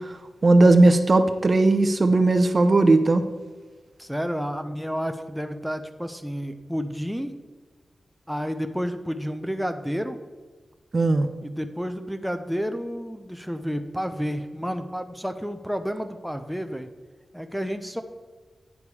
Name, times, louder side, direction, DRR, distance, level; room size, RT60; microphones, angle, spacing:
voice 1, 0.4-3.2 10.9-11.3, right 2 dB, 40° right, 9 dB, 0.5 m, -17 dB
voice 2, 4.0-7.4 8.3-10.2 11.4-16.9 17.3-18.0, equal, ahead, 7 dB, 0.6 m, -30 dB
9.9 x 5.2 x 4.8 m, 1.4 s
wide cardioid pair, 90°, 0 cm